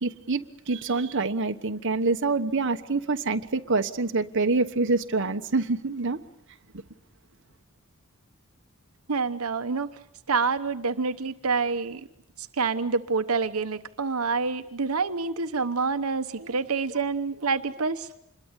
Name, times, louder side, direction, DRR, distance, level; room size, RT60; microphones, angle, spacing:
voice 1, 0.0-6.2, right 3 dB, 60° right, 1.2 m, -26 dB
voice 2, 9.1-9.9 10.3-12.0 12.4-18.1, right 4 dB, 90° right, 1.0 m, -27 dB
26.5 x 22.0 x 8.2 m
head